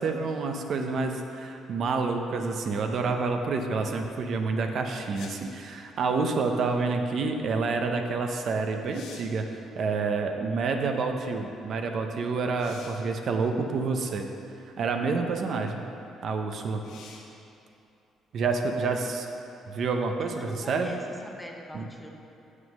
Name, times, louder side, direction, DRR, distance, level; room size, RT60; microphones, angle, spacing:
voice 1, 0.0-9.5 9.8-14.3 14.8-15.8 16.2-16.8 18.3-19.3 19.7-20.9 21.7-21.9, right 4 dB, 50° right, 4 dB, 0.6 m, -28 dB
sound 1, 5.1-5.6 8.2-8.3 8.7-9.4 12.6-13.1 14.1-14.2 16.8-17.4 21.0-21.1, left 5 dB, 85° left, 1.0 m, -48 dB
voice 2, 18.7-19.1 20.2-22.1, left 1 dB, 5° left, 1 dB, 0.7 m, -44 dB
7.2 x 6.5 x 6.4 m, 2.7 s
cardioid pair, 145°, 0 cm